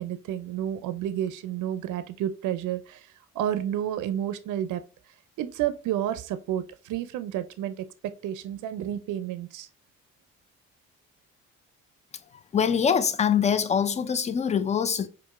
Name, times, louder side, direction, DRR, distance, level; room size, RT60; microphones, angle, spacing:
voice 1, 0.0-4.8 5.4-9.7, right 11 dB, 80° right, 0.5 m, -31 dB
voice 2, 12.5-15.1, left 7 dB, 25° left, 0.4 m, -24 dB
4.5 x 2.5 x 2.4 m
cardioid pair, 90°, 30 cm